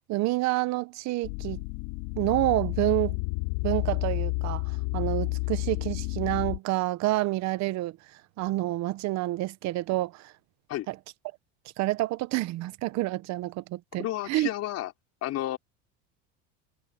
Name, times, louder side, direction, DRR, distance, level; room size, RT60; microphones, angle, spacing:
voice 1, 0.1-1.6 2.2-3.2 3.6-4.6 4.9-8.0 8.4-10.3 10.9-11.0 11.8-14.5, right 18 dB, 55° right, 0.9 m, -28 dB
sound 1, 1.2-6.6, left 30 dB, 80° left, 5.3 m, -30 dB
voice 2, 14.0-14.9 15.2-15.6, left 14 dB, 50° left, 5.1 m, -31 dB
cardioid pair, 135°, 33 cm